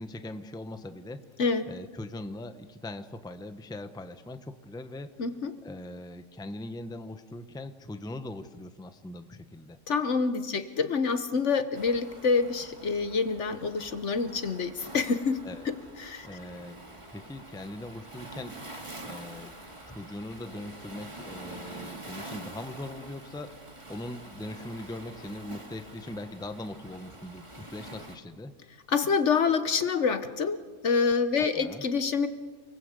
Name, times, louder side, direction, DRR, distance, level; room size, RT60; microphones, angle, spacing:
voice 1, 0.0-1.2 1.6-5.1 5.6-9.8 15.4-15.7 16.2-16.8 17.1-18.6 19.0-19.5 19.8-28.5 31.4-31.8, left 1 dB, 5° left, 9 dB, 0.9 m, -41 dB
voice 2, 5.2-5.5 9.9-15.4 15.6-16.4 28.9-32.3, left 5 dB, 55° left, 11 dB, 1.3 m, -27 dB
Waves surf, 11.7-28.2, right 2 dB, 20° right, 2.4 m, -46 dB
29.5 x 20.0 x 8.2 m, 1.5 s
omnidirectional pair, 1.5 m